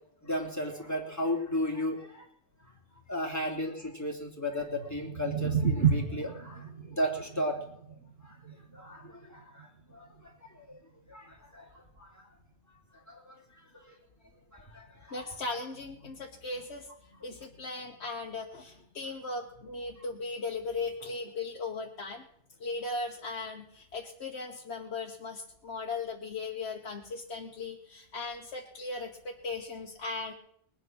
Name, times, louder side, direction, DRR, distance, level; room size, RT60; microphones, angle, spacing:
voice 1, 0.2-2.3 3.1-7.6 8.2-8.4 8.7-10.8 11.1-12.3 13.1-13.4 13.7-14.0 14.5-15.3, left 1 dB, 15° left, -1 dB, 3.0 m, -35 dB
sound 1, 4.6-10.8, right 6 dB, 85° right, 1.8 m, -33 dB
voice 2, 15.1-16.9 17.2-22.3 22.6-30.3, left 3 dB, 85° left, -1 dB, 1.6 m, -38 dB
21.0 x 9.1 x 6.2 m, 0.68 s
omnidirectional pair, 1.1 m